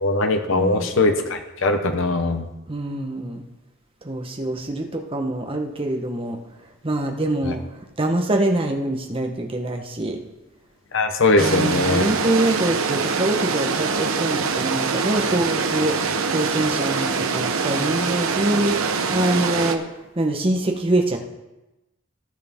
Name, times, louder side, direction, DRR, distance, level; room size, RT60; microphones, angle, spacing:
voice 1, 0.0-2.4 10.9-12.0, left 2 dB, 60° left, 6 dB, 0.9 m, -20 dB
voice 2, 0.5-1.0 2.7-3.4 4.0-6.4 6.8-7.6 8.0-10.2 11.3-19.8 20.2-21.2, right 1 dB, 25° right, 3 dB, 1.1 m, -24 dB
sound 1, 11.4-19.8, right 5 dB, 75° right, 0.9 m, -24 dB
18.0 x 6.7 x 3.6 m, 1.0 s
head